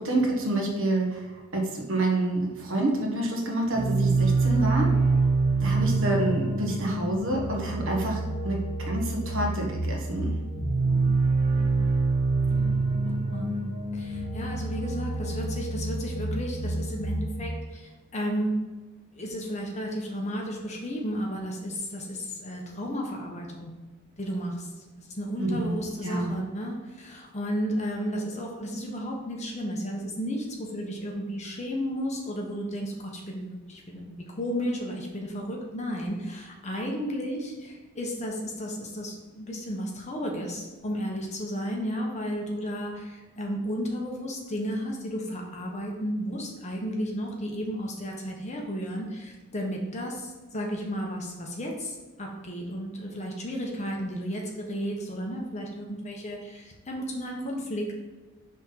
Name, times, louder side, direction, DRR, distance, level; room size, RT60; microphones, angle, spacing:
voice 1, 0.0-5.0 5.6-10.4 25.4-26.4, right 1 dB, 60° right, 0 dB, 1.3 m, -28 dB
sound 1, 3.7-17.4, right 3 dB, 30° right, 0.8 m, -26 dB
voice 2, 10.8-12.0 12.5-13.6 13.9-18.6 19.1-23.7 24.2-24.7 25.0-58.0, equal, 30° left, 0 dB, 1.0 m, -33 dB
5.2 x 3.7 x 5.6 m, 1.2 s
head